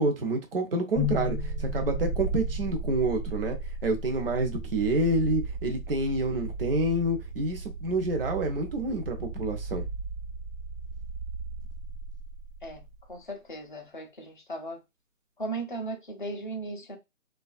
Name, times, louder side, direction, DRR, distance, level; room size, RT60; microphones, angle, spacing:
voice 1, 0.0-3.6 3.8-9.9, right 2 dB, 45° right, 0.6 m, -28 dB
sound 1, 1.0-13.0, right 1 dB, 60° right, 1.1 m, -35 dB
voice 2, 13.1-14.8 15.4-17.0, right 2 dB, 40° left, 0.5 m, -37 dB
2.4 x 2.3 x 2.4 m
figure-of-eight pair, 160°, 41 cm